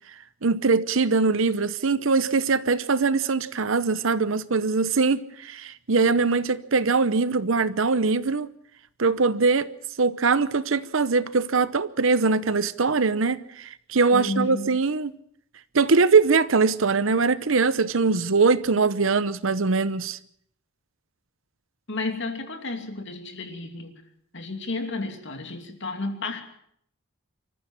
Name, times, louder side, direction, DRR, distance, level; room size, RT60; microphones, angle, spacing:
voice 1, 0.4-8.5 9.0-9.7 10.0-15.1 15.7-20.2, right 4 dB, 70° right, 0.8 m, -22 dB
voice 2, 14.1-14.8 21.9-23.9 24.3-26.4, left 2 dB, 60° left, 2.7 m, -32 dB
25.5 x 14.5 x 7.2 m
head